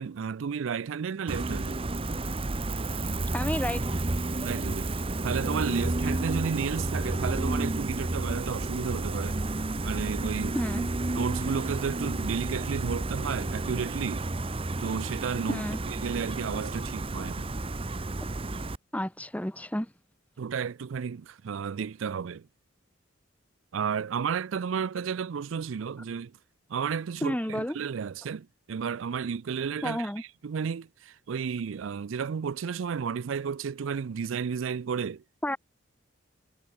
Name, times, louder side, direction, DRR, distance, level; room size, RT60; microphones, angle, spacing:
voice 1, 0.0-1.8 4.4-4.9 5.2-9.4 9.8-10.6 11.1-14.3 14.8-15.6 16.0-17.5 20.4-22.5 23.7-26.3 26.7-35.2, right 6 dB, 75° right, 0.4 m, -32 dB
Gull seagull, 1.3-18.8, right 2 dB, 30° right, 0.8 m, -31 dB
voice 2, 3.3-4.2 10.5-10.8 15.5-15.8 18.9-19.9 27.2-27.8 29.8-30.2 35.4-35.6, left 1 dB, 5° left, 1.3 m, -31 dB
head